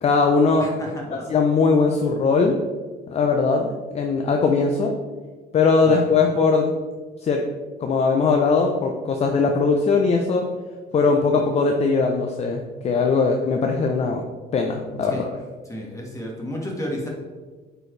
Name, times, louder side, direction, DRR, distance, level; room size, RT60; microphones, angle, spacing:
voice 1, 0.0-0.7 1.3-2.6 3.1-5.0 5.5-6.7 7.2-7.4 7.8-10.5 10.9-14.2 14.5-15.3, left 4 dB, 40° left, 3 dB, 0.6 m, -20 dB
voice 2, 0.6-1.3 5.8-6.1 15.0-15.3 15.6-17.1, equal, 20° left, -1 dB, 1.8 m, -32 dB
8.7 x 4.5 x 3.3 m, 1.4 s
cardioid pair, 110°, 17 cm